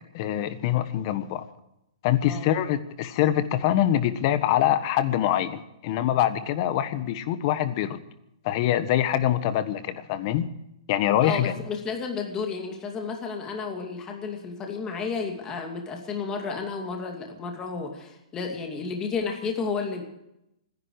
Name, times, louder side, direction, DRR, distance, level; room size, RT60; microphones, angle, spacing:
voice 1, 0.1-1.5 2.0-8.0 8.4-10.5 10.9-11.5, left 11 dB, 40° left, 12 dB, 1.4 m, -24 dB
voice 2, 11.2-20.0, left 5 dB, 20° left, 2 dB, 2.5 m, -32 dB
26.5 x 11.0 x 4.9 m, 0.84 s
hypercardioid pair, 145°, 3 cm